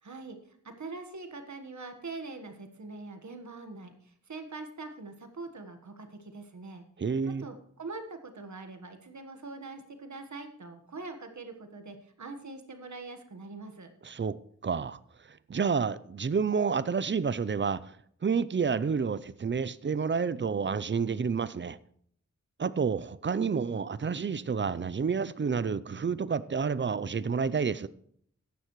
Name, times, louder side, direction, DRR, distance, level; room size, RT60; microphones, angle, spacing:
voice 1, 0.0-6.9 7.3-13.9, right 3 dB, 65° right, 1.5 m, -43 dB
voice 2, 7.0-7.5 14.0-14.4 14.6-15.0 15.3-18.0 18.2-21.8 22.6-27.9, right 5 dB, 40° right, 0.5 m, -29 dB
14.5 x 10.0 x 3.1 m
wide cardioid pair, 75°, 31 cm